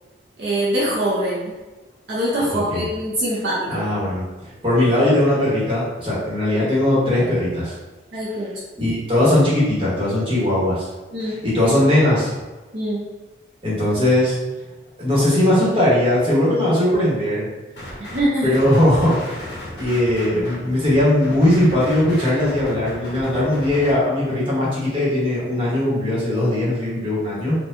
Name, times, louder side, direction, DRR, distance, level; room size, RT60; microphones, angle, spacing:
voice 1, 0.4-1.6 2.1-3.8 8.1-8.6 11.1-11.4 12.7-13.1 18.0-18.6, right 1 dB, 65° right, -7 dB, 0.8 m, -23 dB
voice 2, 2.5-2.8 3.7-7.8 8.8-10.9 11.4-12.3 13.6-14.4 15.0-17.5 18.4-27.6, left 1 dB, 30° right, -8 dB, 1.2 m, -19 dB
sound 1, 17.8-18.3 18.5-23.9, equal, 65° left, 0.9 m, -35 dB
4.3 x 2.5 x 2.6 m, 1.2 s
head